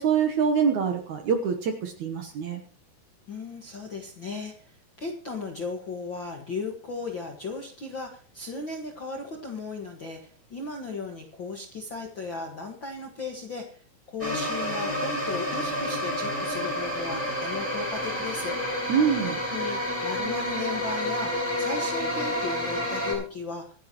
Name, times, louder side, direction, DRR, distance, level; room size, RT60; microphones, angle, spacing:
voice 1, 0.0-2.6 18.9-19.4, right 6 dB, 65° right, 5 dB, 2.0 m, -25 dB
voice 2, 3.3-13.8 14.1-18.6 19.2-23.6, left 3 dB, 50° left, 1 dB, 1.4 m, -36 dB
sound 1, 14.2-23.1, left 1 dB, 5° left, 5.8 m, -29 dB
25.5 x 9.2 x 3.0 m, 0.43 s
omnidirectional pair, 4.6 m